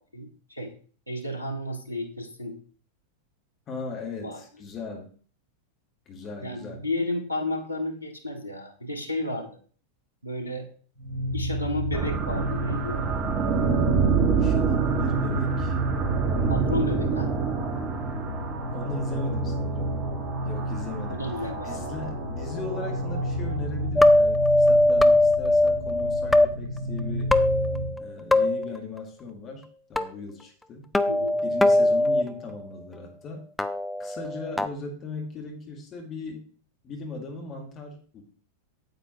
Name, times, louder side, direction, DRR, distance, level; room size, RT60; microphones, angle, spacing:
voice 1, 0.1-0.7 1.1-2.6 4.2-4.4 6.4-9.6 10.2-10.7 11.3-13.1 16.5-17.3 21.1-21.9 31.1-31.4, left 1 dB, 90° right, 5 dB, 1.1 m, -32 dB
voice 2, 3.7-5.1 6.1-6.9 14.4-15.8 16.3-16.7 18.7-20.0 20.4-27.3 28.0-29.6 29.9-30.9 31.4-33.4 34.0-36.5 36.8-38.2, left 3 dB, 30° left, 2 dB, 1.8 m, -38 dB
sound 1, 11.0-28.0, equal, 55° right, 4.5 m, -32 dB
sound 2, 11.9-23.9, right 5 dB, 30° right, 1.4 m, -28 dB
sound 3, 24.0-26.5 27.3-28.0 28.3-28.7 30.0-30.1 30.9-32.2 33.6-34.7, left 1 dB, 5° left, 0.5 m, -20 dB
9.1 x 8.2 x 3.0 m, 0.42 s
figure-of-eight pair, 90°, 0 cm